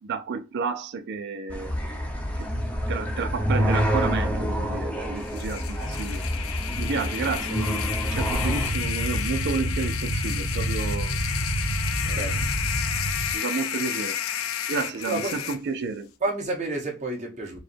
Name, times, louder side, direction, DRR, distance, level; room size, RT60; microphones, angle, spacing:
voice 1, 0.0-1.8 2.4-2.5 2.9-6.2 6.8-11.2 12.0-12.4 13.3-14.2 14.7-16.1, right 4 dB, 55° right, 0.4 m, -31 dB
sound 1, 1.5-8.7, equal, 5° left, 0.8 m, -27 dB
sound 2, 5.2-15.6, left 9 dB, 75° left, 0.5 m, -32 dB
sound 3, 8.1-13.3, right 1 dB, 75° right, 1.9 m, -28 dB
voice 2, 12.1-12.5 15.1-15.5 16.2-17.6, right 2 dB, 35° right, 1.3 m, -30 dB
4.7 x 2.1 x 4.4 m
head